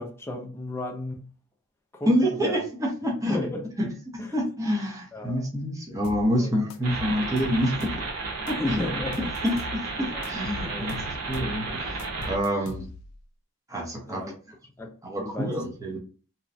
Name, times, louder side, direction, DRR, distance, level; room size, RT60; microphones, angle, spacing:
voice 1, 0.0-1.3 1.9-2.7 3.3-3.7 4.2-4.4 5.1-5.4 6.3-6.5 8.5-9.3 9.9-10.4 10.7-11.0 14.1-14.3 14.8-15.7 15.9-16.0, left 2 dB, 10° left, 0.4 m, -34 dB
voice 2, 2.1-3.4 3.8-3.9 4.3-7.9 8.5-8.8 9.4-10.9 11.3-12.8 13.7-14.2 15.0-16.0, equal, 15° right, 0.8 m, -27 dB
sound 1, 6.0-6.3 6.7-8.1 8.5-9.8 10.2-11.6 12.0-13.2, left 4 dB, 85° left, 0.4 m, -40 dB
sound 2, 6.8-12.4, right 3 dB, 70° right, 1.0 m, -33 dB
2.9 x 2.2 x 2.5 m
head